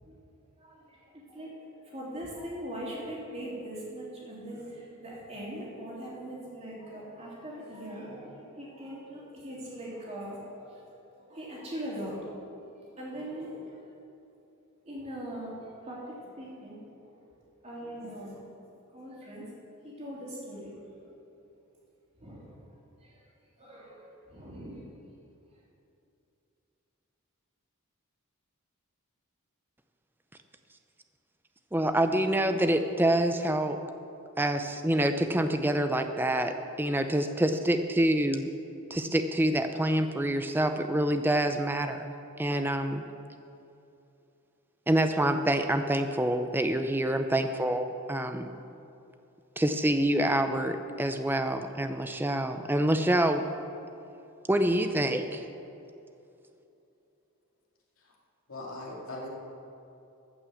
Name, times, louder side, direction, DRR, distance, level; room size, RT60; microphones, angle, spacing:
voice 1, 0.6-11.0 11.3-12.3 13.0-13.8 14.8-17.1 17.6-18.4 18.9-19.4 19.8-21.1 22.2-22.7 23.0-23.2 23.6-24.9, equal, 30° right, -5 dB, 3.0 m, -41 dB
voice 2, 31.7-33.8 34.4-38.5 38.9-43.0 44.9-48.5 49.6-53.6 54.5-55.5, right 1 dB, 10° right, 8 dB, 0.5 m, -27 dB
voice 3, 58.5-59.3, left 2 dB, 70° left, -3 dB, 2.5 m, -39 dB
14.5 x 6.2 x 7.0 m, 2.8 s
head